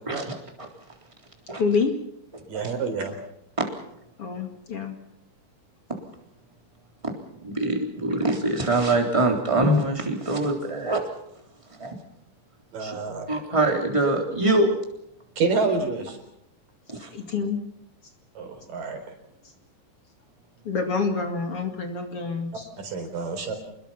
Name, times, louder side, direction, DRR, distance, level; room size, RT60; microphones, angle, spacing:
voice 1, 1.6-1.9 4.2-4.9 17.1-17.6 20.6-22.7, left 5 dB, 45° left, 4 dB, 2.9 m, -27 dB
voice 2, 2.5-3.2 12.7-13.3 15.4-16.2 18.4-19.0 22.8-23.5, right 4 dB, 80° right, 5 dB, 5.8 m, -28 dB
voice 3, 7.4-11.0 11.8-11.9 12.8-13.0 13.3-14.8 16.9-17.1, right 2 dB, 10° right, 1 dB, 3.4 m, -23 dB
27.5 x 21.0 x 5.8 m, 0.79 s
omnidirectional pair, 3.8 m